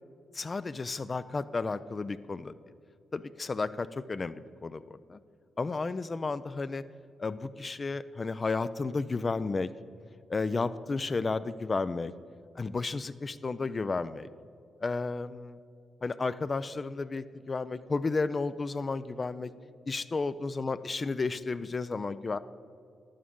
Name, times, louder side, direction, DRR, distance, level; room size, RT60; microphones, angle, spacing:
voice 1, 0.3-2.5 3.1-5.2 5.6-6.8 7.2-9.7 10.3-12.1 12.6-14.3 14.8-15.6 16.0-19.5 19.9-22.4, left 3 dB, 40° left, 13 dB, 0.3 m, -32 dB
11.0 x 8.6 x 3.7 m, 2.4 s
supercardioid pair, 50°, 0 cm